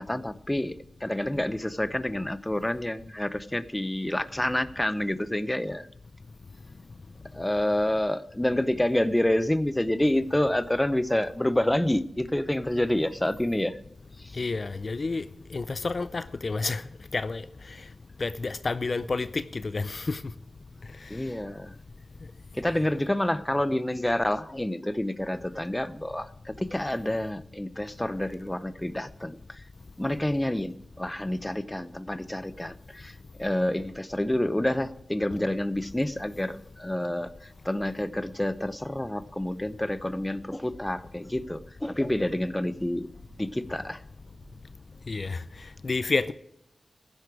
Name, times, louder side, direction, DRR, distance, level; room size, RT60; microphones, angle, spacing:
voice 1, 0.0-5.9 7.3-13.8 14.2-14.4 21.1-21.7 22.5-29.6 30.0-43.1 43.4-44.0, left 1 dB, 10° left, 0.8 m, -28 dB
voice 2, 14.3-15.2 15.5-16.8 17.1-17.4 18.2-20.2 45.1-45.4 45.8-46.3, left 3 dB, 50° left, 0.5 m, -29 dB
sound 1, 40.7-41.0 41.4-43.4 43.7-45.2 45.5-45.6, left 1 dB, 35° left, 3.1 m, -55 dB
15.5 x 11.0 x 4.8 m
wide cardioid pair, 80°, 0 cm